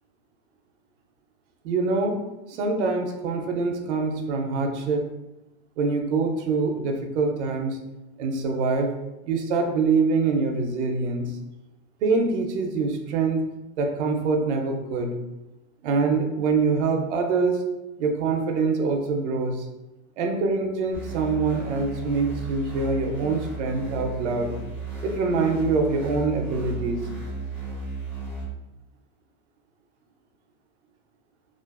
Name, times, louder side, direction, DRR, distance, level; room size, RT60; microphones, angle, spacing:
voice 1, 1.6-2.2 2.5-5.1 5.8-7.8 8.2-8.9 9.2-11.3 12.0-13.4 13.8-15.1 15.8-17.7 18.0-19.7 20.2-24.5 25.0-27.1, right 4 dB, 65° right, 4 dB, 0.5 m, -24 dB
sound 1, 20.9-28.4, right 3 dB, 5° right, 0.5 m, -35 dB
2.4 x 2.4 x 2.2 m, 0.99 s
supercardioid pair, 175°, 40 cm